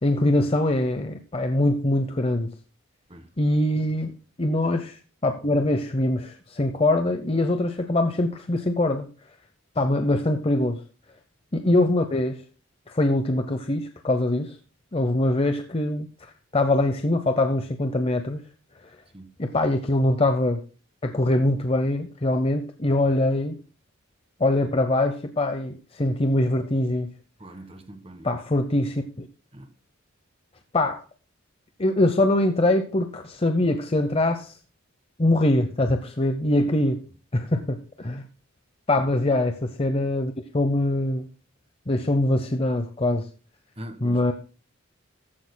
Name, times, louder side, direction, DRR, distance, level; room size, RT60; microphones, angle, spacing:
voice 1, 0.0-2.5 3.4-4.1 4.4-9.1 9.8-10.8 11.5-12.4 12.9-14.6 14.9-18.4 18.8-19.0 19.4-20.6 21.0-23.6 24.4-27.1 28.2-29.3 30.7-31.0 31.8-34.6 35.2-37.0 37.3-38.3 38.9-41.3 41.9-43.3 44.0-44.3, left 1 dB, 30° left, 7 dB, 0.7 m, -23 dB
voice 2, 27.4-28.3 29.5-29.7 36.6-36.7 43.8-44.2, right 1 dB, 25° right, 7 dB, 1.4 m, -42 dB
15.0 x 12.0 x 2.2 m, 0.36 s
head